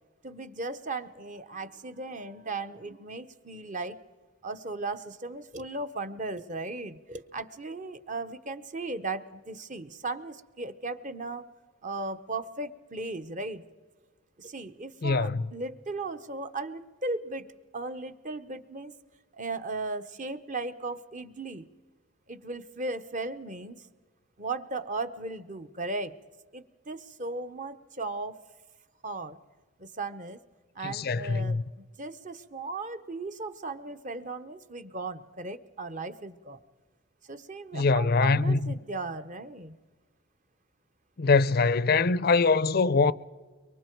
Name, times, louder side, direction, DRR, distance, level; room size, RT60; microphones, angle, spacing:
voice 1, 0.2-4.0 4.4-11.5 11.8-13.7 14.4-17.5 17.7-18.9 19.3-21.7 22.3-23.9 24.4-26.2 26.5-28.4 29.0-29.4 29.8-30.4 30.7-31.7 32.0-36.6 37.2-39.7, right 3 dB, 40° right, 0.9 m, -36 dB
voice 2, 15.0-15.4 30.8-31.6 37.7-38.7 41.2-43.1, left 4 dB, 50° left, 0.5 m, -23 dB
24.5 x 23.5 x 4.6 m
head